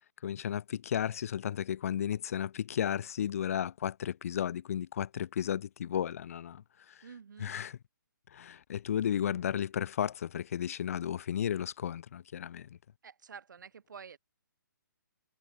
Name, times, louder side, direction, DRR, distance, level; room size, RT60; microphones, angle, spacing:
voice 1, 0.2-7.0 7.4-7.8 8.3-12.8, left 9 dB, 45° left, 0.8 m, -34 dB
voice 2, 7.0-7.5 13.0-14.2, right 6 dB, 65° right, 2.1 m, -49 dB
hypercardioid pair, 160°, 11 cm